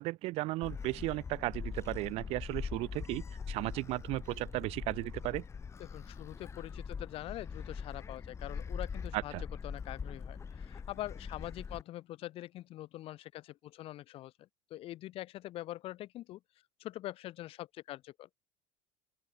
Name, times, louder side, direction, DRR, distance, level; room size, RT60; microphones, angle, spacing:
voice 1, 0.0-5.4 9.1-9.4, right 20 dB, 65° right, 1.0 m, -35 dB
Gull seagull, 0.6-11.8, left 6 dB, 25° left, 1.2 m, -42 dB
voice 2, 5.8-9.3 9.6-16.4 16.8-18.3, left 15 dB, 60° left, 3.8 m, -44 dB
open air
supercardioid pair, 110°, 11 cm